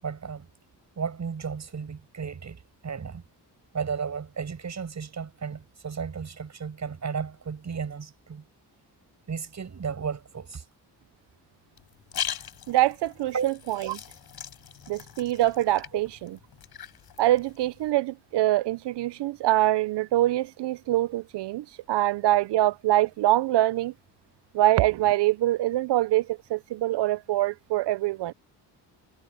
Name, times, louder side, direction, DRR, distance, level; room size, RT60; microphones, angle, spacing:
voice 1, 0.0-0.5 1.0-3.2 3.7-8.4 9.3-10.6 13.3-13.5 15.9-16.0, right 6 dB, 40° right, 7.8 m, -34 dB
sound 1, 11.8-17.9, left 10 dB, 60° left, 4.4 m, -40 dB
voice 2, 12.7-14.0 14.9-16.4 17.2-23.9 24.5-28.3, right 15 dB, 75° right, 0.7 m, -24 dB
cardioid pair, 125°, 42 cm